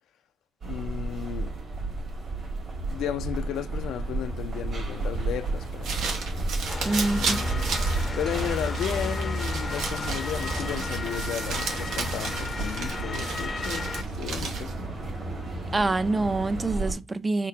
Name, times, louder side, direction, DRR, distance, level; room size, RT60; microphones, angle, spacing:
sound 1, 0.6-16.9, right 3 dB, 50° right, 1.9 m, -33 dB
voice 1, 0.7-1.6 2.9-6.0 7.2-7.8 8.2-14.7, left 10 dB, 80° left, 0.4 m, -34 dB
sound 2, 5.6-14.9, right 4 dB, 85° right, 1.0 m, -34 dB
Motor vehicle (road) / Siren, 6.7-14.0, left 3 dB, 30° left, 0.5 m, -34 dB
voice 2, 6.8-7.4 15.7-17.5, right 2 dB, 25° right, 0.4 m, -26 dB
3.7 x 2.4 x 4.5 m
cardioid pair, 90°, 0 cm